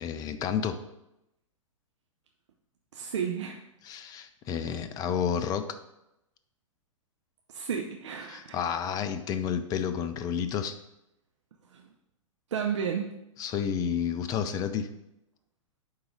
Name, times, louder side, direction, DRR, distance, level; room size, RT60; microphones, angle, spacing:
voice 1, 0.0-0.8 3.8-5.7 8.3-10.8 13.4-14.9, left 8 dB, 20° left, 9 dB, 0.6 m, -30 dB
voice 2, 2.9-3.6 7.5-8.6 11.7-11.8 12.5-13.1, right 7 dB, 60° right, 3 dB, 0.7 m, -32 dB
9.5 x 3.9 x 4.8 m, 0.87 s
figure-of-eight pair, 105°, 17 cm